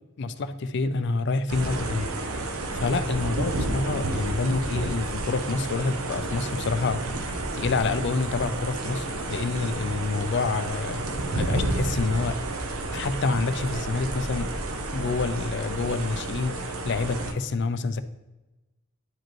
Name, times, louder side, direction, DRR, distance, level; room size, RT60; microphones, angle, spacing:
voice 1, 0.2-2.1 2.7-11.0 11.3-12.4 12.9-14.5 14.9-18.0, left 3 dB, 55° left, 12 dB, 0.4 m, -27 dB
sound 1, 1.5-17.3, right 2 dB, 80° right, 0.8 m, -31 dB
10.5 x 5.1 x 3.0 m, 1.1 s
head